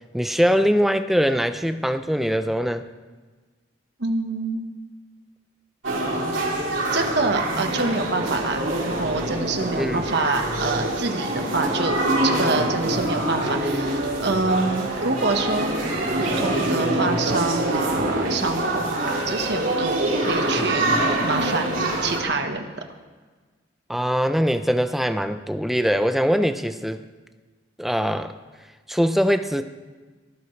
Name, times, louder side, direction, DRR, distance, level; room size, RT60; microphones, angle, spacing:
voice 1, 0.1-2.9 9.8-10.1 20.5-20.7 23.9-27.0 27.8-28.3 28.9-29.6, equal, ahead, 9 dB, 0.5 m, -22 dB
voice 2, 4.0-4.6 6.9-12.0 12.2-15.8 16.2-22.7, right 3 dB, 60° right, 5 dB, 1.3 m, -26 dB
sound 1, 5.8-22.2, right 1 dB, 85° right, 3.3 m, -25 dB
23.5 x 14.0 x 3.3 m, 1.4 s
head